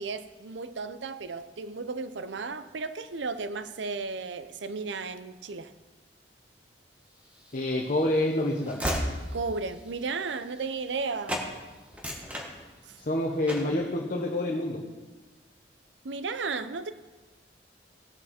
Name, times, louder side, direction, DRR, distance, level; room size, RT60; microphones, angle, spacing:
voice 1, 0.0-5.7 9.3-11.4 12.8-13.0 16.0-16.9, right 4 dB, 80° right, 0.6 m, -34 dB
Train / Slam, 7.4-11.0 11.3-11.5 11.9-13.1 13.5-13.8, equal, 10° right, 1.6 m, -35 dB
voice 2, 7.5-8.8 13.0-14.9, left 1 dB, 50° left, 1.1 m, -27 dB
17.5 x 7.5 x 4.3 m
head